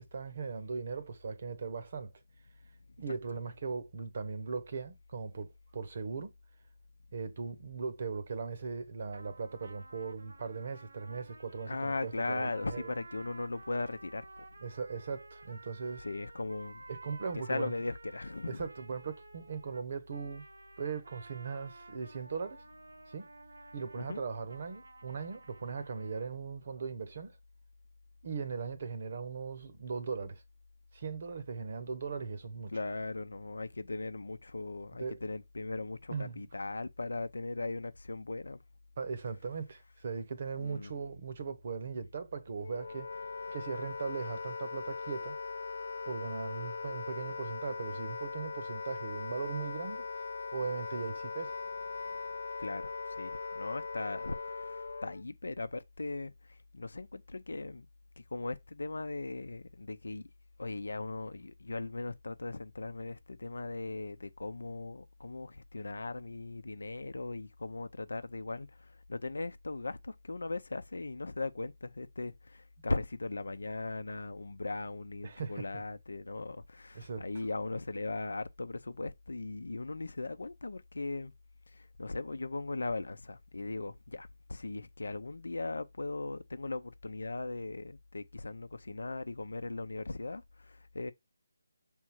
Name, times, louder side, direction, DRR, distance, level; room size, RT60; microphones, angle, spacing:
voice 1, 0.0-2.1 3.0-6.3 7.1-12.9 14.6-16.1 16.9-17.7 18.5-20.5 20.8-22.6 23.1-23.3 23.7-27.4 28.2-30.4 30.9-32.7 35.0-35.2 36.1-36.4 39.0-43.1 43.5-45.4 46.1-50.2 50.5-51.6 75.2-75.8 76.9-77.4, right 5 dB, 40° right, 0.9 m, -39 dB
sound 1, 9.1-26.3, right 3 dB, 70° right, 1.0 m, -53 dB
voice 2, 11.7-14.5 16.0-16.8 17.5-18.7 23.9-24.2 32.7-38.6 40.6-40.9 52.6-57.9 58.2-60.3 60.6-81.3 81.7-91.1, left 3 dB, 80° left, 0.7 m, -38 dB
Wind instrument woodwind instrument, 42.6-55.2, left 4 dB, 55° left, 0.3 m, -40 dB
6.3 x 3.6 x 4.5 m
figure-of-eight pair, 170°, 0 cm